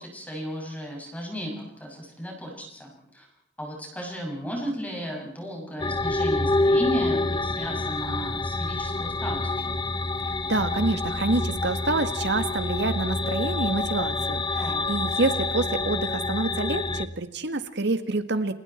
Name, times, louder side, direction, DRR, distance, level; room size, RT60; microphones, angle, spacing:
voice 1, 0.0-3.3 3.6-9.8 14.6-14.9, equal, 10° left, -1 dB, 6.7 m, -34 dB
sound 1, 5.8-17.1, left 2 dB, 25° left, 1.0 m, -27 dB
voice 2, 10.5-18.5, right 2 dB, 65° right, 9 dB, 1.8 m, -27 dB
30.0 x 27.0 x 4.5 m, 0.71 s
head